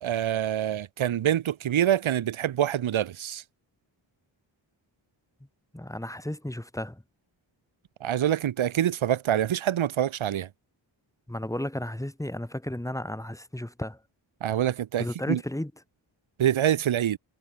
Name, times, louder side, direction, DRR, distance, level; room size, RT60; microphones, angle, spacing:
voice 1, 0.0-3.4 8.0-10.5 14.4-15.4 16.4-17.2, right 11 dB, 85° right, 0.8 m, -26 dB
voice 2, 5.7-7.0 11.3-14.0 15.0-15.7, left 1 dB, 5° left, 1.5 m, -33 dB
wide cardioid pair, 130°, 46 cm